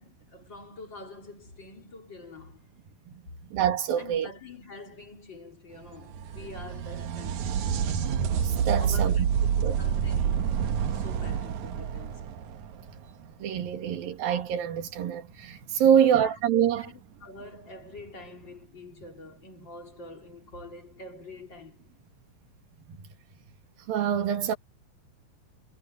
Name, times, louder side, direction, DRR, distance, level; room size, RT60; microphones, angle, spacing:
voice 1, 0.0-2.6 4.0-8.0 8.8-9.2 9.8-10.6 10.9-12.4 15.8-16.3 16.8-21.9, left 2 dB, 30° left, 4.1 m, -46 dB
voice 2, 3.5-4.3 8.4-9.1 9.6-9.8 13.4-16.9 23.9-24.6, right 9 dB, 85° right, 3.9 m, -25 dB
sound 1, 5.9-13.5 16.8-16.9 18.0-18.1, right 8 dB, 65° right, 2.5 m, -28 dB
omnidirectional pair, 4.0 m